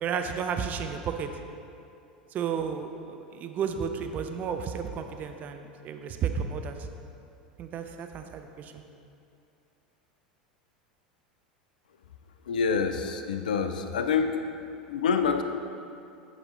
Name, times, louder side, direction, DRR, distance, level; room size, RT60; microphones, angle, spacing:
voice 1, 0.0-1.3 2.3-6.9 7.6-8.8, right 7 dB, 35° right, 6 dB, 0.5 m, -32 dB
voice 2, 12.5-14.4 14.9-15.4, left 6 dB, 75° left, 7 dB, 0.5 m, -26 dB
8.6 x 5.0 x 3.8 m, 2.6 s
figure-of-eight pair, 80°, 5 cm